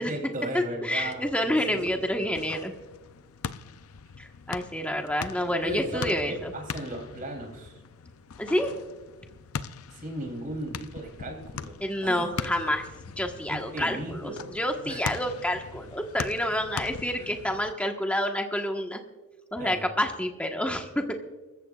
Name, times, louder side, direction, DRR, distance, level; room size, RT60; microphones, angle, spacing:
voice 1, 0.0-2.3 5.4-7.8 9.9-12.3 13.5-14.6 14.8-15.1 17.2-17.3 19.6-19.9, right 1 dB, 40° right, 2 dB, 3.4 m, -37 dB
voice 2, 0.5-2.7 4.2-6.5 8.4-8.7 11.8-12.8 13.2-19.0 19.5-21.1, left 1 dB, 5° left, 3 dB, 1.3 m, -28 dB
sound 1, 1.0-17.7, left 6 dB, 75° left, 0.5 m, -41 dB
26.0 x 14.5 x 2.4 m, 1.2 s
head